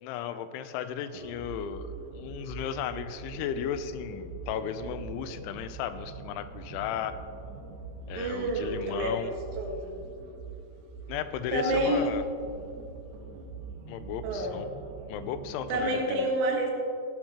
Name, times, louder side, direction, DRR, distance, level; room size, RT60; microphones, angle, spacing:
voice 1, 0.0-7.2 8.1-9.3 11.1-12.2 13.9-14.7 15.1-16.3, left 8 dB, 85° left, 11 dB, 3.0 m, -35 dB
sound 1, 1.1-15.9, right 5 dB, 70° right, 2.5 m, -43 dB
voice 2, 8.1-10.0 11.5-12.1 14.2-14.6 15.7-16.7, right 1 dB, 85° right, 0 dB, 4.1 m, -29 dB
17.0 x 11.5 x 2.9 m, 2.4 s
omnidirectional pair, 5.4 m